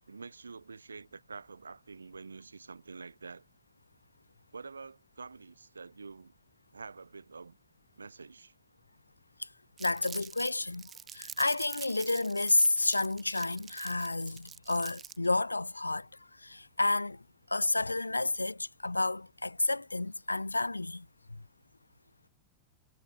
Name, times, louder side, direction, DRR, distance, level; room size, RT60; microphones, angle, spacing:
voice 1, 0.1-3.5 4.5-6.3 6.7-7.6 8.0-8.5, right 4 dB, 75° right, 3.4 m, -47 dB
voice 2, 9.8-10.8 11.1-16.1 16.4-17.2 17.5-21.1, left 2 dB, 85° left, 0.7 m, -30 dB
Crumpling crinkling, 9.8-15.3, right 8 dB, 25° right, 0.9 m, -47 dB
figure-of-eight pair, 90°, 0 cm